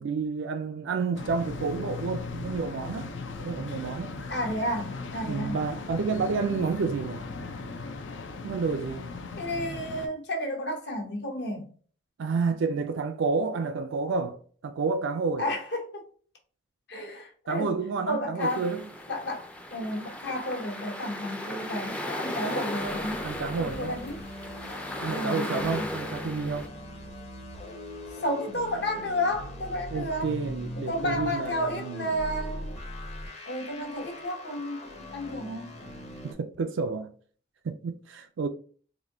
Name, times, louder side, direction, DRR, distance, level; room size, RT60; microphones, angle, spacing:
voice 1, 0.0-3.1 3.4-4.1 5.2-7.2 8.4-9.1 12.2-15.5 17.5-18.9 23.2-23.9 25.0-26.7 29.9-32.2 36.2-37.1 37.6-38.5, right 4 dB, 75° right, 0.4 m, -30 dB
sound 1, 1.1-10.1, left 3 dB, 75° left, 0.5 m, -38 dB
voice 2, 4.3-5.6 9.4-11.7 15.4-16.0 16.9-17.7 18.1-18.6 19.1-23.2 23.6-24.2 25.1-25.9 28.2-30.3 30.9-32.7 33.5-35.7, left 1 dB, 60° left, 1.1 m, -32 dB
sound 2, 18.4-26.7, left 1 dB, 5° left, 0.4 m, -36 dB
sound 3, 22.2-36.3, left 1 dB, 35° left, 0.8 m, -41 dB
4.1 x 2.6 x 2.7 m
head